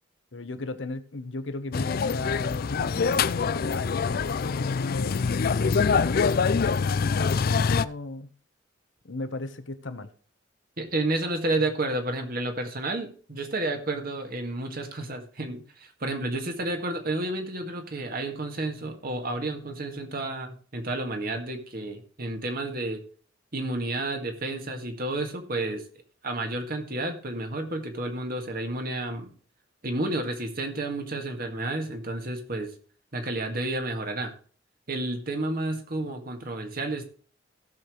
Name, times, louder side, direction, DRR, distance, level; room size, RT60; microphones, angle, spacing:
voice 1, 0.3-8.3 9.0-10.1, left 3 dB, 70° left, 1.0 m, -36 dB
sound 1, 1.7-7.9, left 5 dB, 50° left, 0.4 m, -25 dB
voice 2, 10.8-23.0 23.5-25.8 26.2-29.3 29.8-32.7 33.1-34.3 34.9-37.0, right 2 dB, 50° right, 1.8 m, -31 dB
16.5 x 6.8 x 3.1 m
head